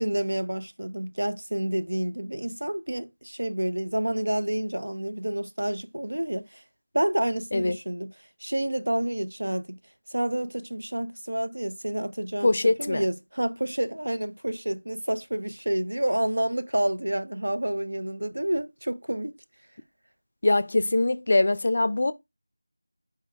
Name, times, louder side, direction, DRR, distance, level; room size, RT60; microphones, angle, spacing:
voice 1, 0.0-6.6 6.9-8.1 8.4-9.8 10.1-12.5 12.8-19.4, right 1 dB, 80° right, 0.5 m, -29 dB
voice 2, 12.4-13.1 20.4-22.1, left 2 dB, 35° left, 0.3 m, -23 dB
4.6 x 2.2 x 4.6 m
figure-of-eight pair, 175°, 0 cm